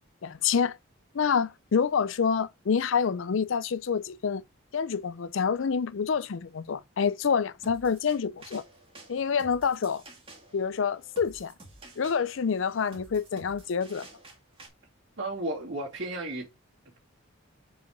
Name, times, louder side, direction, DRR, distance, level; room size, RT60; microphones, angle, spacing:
voice 1, 0.2-0.8 1.1-4.4 4.7-8.6 9.1-10.0 10.5-11.5 12.0-14.1, left 6 dB, 65° left, 0.5 m, -27 dB
sound 1, 7.6-14.7, right 2 dB, 25° right, 1.8 m, -51 dB
voice 2, 15.2-16.5, right 2 dB, 60° right, 2.6 m, -33 dB
5.1 x 4.9 x 5.1 m
head